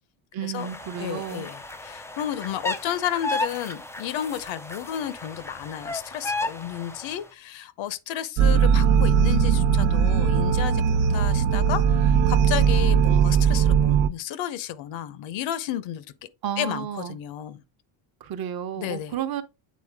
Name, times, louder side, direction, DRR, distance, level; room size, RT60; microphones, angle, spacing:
voice 1, 0.3-1.5 16.4-17.2 18.2-19.4, right 9 dB, 45° right, 0.9 m, -32 dB
sound 1, 0.6-7.2, left 2 dB, 5° left, 0.3 m, -34 dB
voice 2, 1.0-16.0 16.6-17.6 18.8-19.2, left 11 dB, 65° left, 0.9 m, -32 dB
sound 2, 8.4-14.1, right 7 dB, 75° right, 0.7 m, -19 dB
8.5 x 4.0 x 3.5 m
cardioid pair, 150°, 49 cm